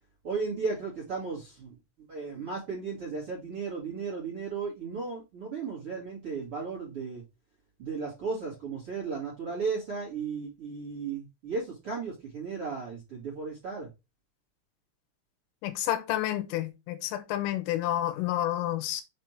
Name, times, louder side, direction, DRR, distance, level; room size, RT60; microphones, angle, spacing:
voice 1, 0.2-1.7 2.1-7.2 7.8-13.9, right 5 dB, 40° right, 2.2 m, -35 dB
voice 2, 15.6-19.0, left 13 dB, 80° left, 3.4 m, -30 dB
7.6 x 3.4 x 4.4 m
omnidirectional pair, 5.9 m